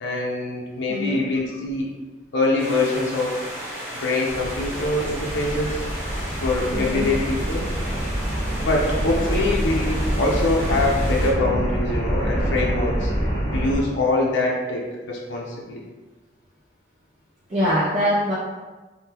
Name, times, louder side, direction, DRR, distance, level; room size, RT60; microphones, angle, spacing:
voice 1, 0.0-1.9 2.3-3.4 3.9-5.8 6.4-7.7 8.6-13.1 13.5-15.8, left 2 dB, 80° left, -3 dB, 0.6 m, -24 dB
voice 2, 0.9-1.2 6.7-7.1 17.5-18.3, equal, 35° right, -8 dB, 0.5 m, -23 dB
sound 1, 2.6-11.3, equal, 15° right, 1.0 m, -34 dB
sound 2, 4.3-13.8, equal, 25° left, 0.7 m, -26 dB
3.5 x 2.2 x 2.9 m, 1.2 s
head